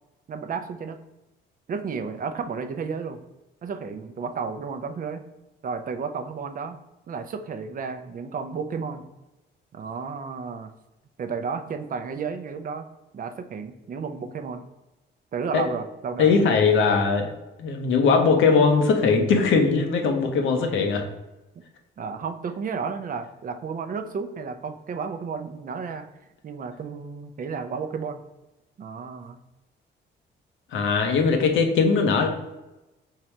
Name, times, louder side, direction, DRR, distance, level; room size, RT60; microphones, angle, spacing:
voice 1, 0.3-1.0 1.7-3.2 3.6-5.2 5.6-6.8 7.1-9.0 9.7-10.7 11.2-12.9 13.1-14.6 15.3-16.4 22.0-26.1 26.4-28.2 28.8-29.4, right 5 dB, 45° right, 7 dB, 0.5 m, -32 dB
voice 2, 16.2-17.3 17.6-21.0 30.7-32.3, left 5 dB, 80° left, 4 dB, 0.8 m, -20 dB
3.7 x 3.0 x 4.4 m, 1.0 s
cardioid pair, 90°, 20 cm